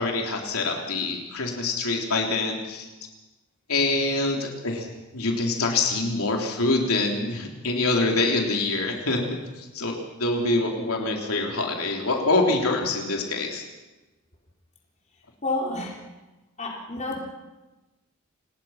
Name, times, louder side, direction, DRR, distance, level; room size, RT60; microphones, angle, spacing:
voice 1, 0.0-2.9 3.7-9.2 9.6-13.6, left 2 dB, 75° left, 1 dB, 3.7 m, -25 dB
voice 2, 15.4-16.0 16.6-17.2, left 2 dB, 30° left, -1 dB, 4.0 m, -29 dB
28.0 x 19.5 x 5.9 m, 1.1 s
head